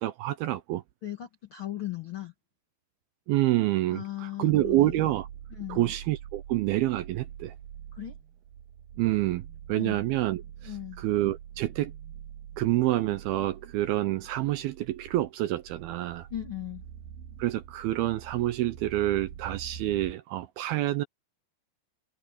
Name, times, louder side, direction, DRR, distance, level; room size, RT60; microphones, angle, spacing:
voice 1, 0.0-0.8 3.3-5.3 5.7-7.5 9.0-11.9 12.6-16.3 17.4-21.0, right 15 dB, 80° right, 2.3 m, -28 dB
voice 2, 1.0-2.3 3.9-5.1 5.6-5.9 7.9-8.2 9.7-10.1 10.6-11.0 16.3-16.8, left 14 dB, 60° left, 1.3 m, -37 dB
sound 1, 4.5-20.1, right 9 dB, 65° right, 2.6 m, -45 dB
omnidirectional pair, 5.0 m